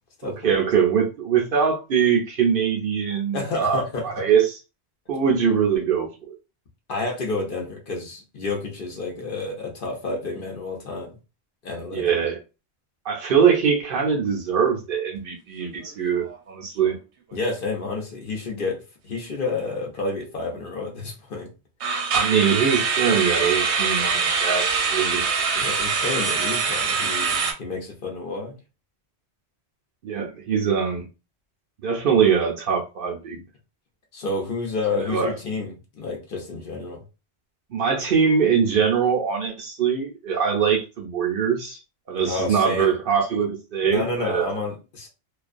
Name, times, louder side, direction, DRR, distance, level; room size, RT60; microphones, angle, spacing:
voice 1, 0.2-4.6 5.1-6.3 11.9-12.4 13.0-17.0 22.1-25.2 30.0-31.0 31.8-33.4 35.0-35.3 37.7-41.8 42.1-44.6, right 7 dB, 60° right, 0.7 m, -22 dB
voice 2, 3.3-4.1 6.9-11.1 11.6-12.1 17.3-21.5 25.5-28.5 34.1-37.0 42.3-42.9 43.8-45.1, left 3 dB, 55° left, 0.8 m, -30 dB
sound 1, 15.6-15.9 16.2-16.4 16.9-17.0 21.8-27.5, right 5 dB, 85° right, 0.9 m, -23 dB
2.4 x 2.2 x 2.5 m
omnidirectional pair, 1.1 m